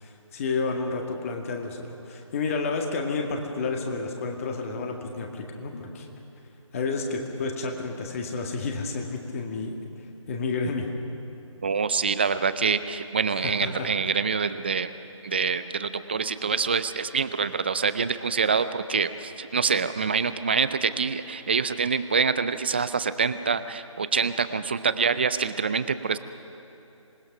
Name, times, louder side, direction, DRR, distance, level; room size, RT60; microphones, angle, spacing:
voice 1, 0.0-6.1 6.7-9.8 10.3-10.9 13.4-13.9, left 4 dB, 25° left, 3 dB, 1.9 m, -30 dB
voice 2, 11.6-14.9 15.2-26.2, right 5 dB, 20° right, 13 dB, 0.4 m, -26 dB
26.5 x 19.5 x 6.0 m, 2.9 s
figure-of-eight pair, 155°, 17 cm